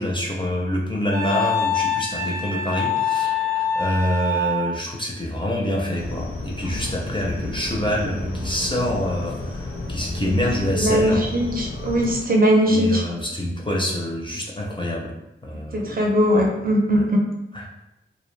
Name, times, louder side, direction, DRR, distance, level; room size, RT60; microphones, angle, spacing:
voice 1, 0.0-11.3 12.7-15.1 15.4-16.0 16.3-16.4 17.5-17.7, left 1 dB, 25° left, -2 dB, 0.4 m, -26 dB
Wind instrument woodwind instrument, 1.1-4.8, left 5 dB, 90° right, 0.6 m, -24 dB
sound 1, 5.9-12.2, left 2 dB, 80° left, 0.5 m, -31 dB
voice 2, 10.7-13.0 15.7-17.2, equal, 45° right, 0 dB, 0.6 m, -20 dB
2.4 x 2.0 x 3.1 m, 0.88 s
wide cardioid pair, 85°, 21 cm